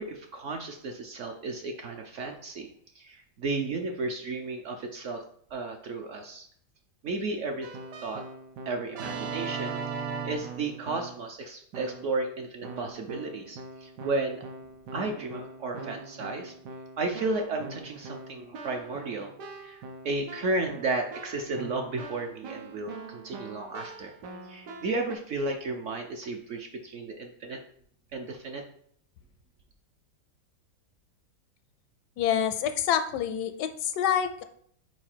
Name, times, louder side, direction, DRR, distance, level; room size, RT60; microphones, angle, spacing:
voice 1, 0.0-2.7 2.9-5.2 5.5-6.5 7.0-7.7 8.0-8.2 8.7-14.4 14.9-16.5 17.0-24.1 24.4-27.6 28.1-28.6, right 3 dB, 60° right, 3 dB, 0.8 m, -33 dB
Keyboard (musical), 7.6-11.3 11.7-12.2 12.6-25.1, right 4 dB, 75° right, 1.3 m, -41 dB
voice 2, 32.2-34.4, left 9 dB, 85° left, 9 dB, 1.2 m, -27 dB
4.8 x 4.6 x 4.4 m, 0.63 s
omnidirectional pair, 1.8 m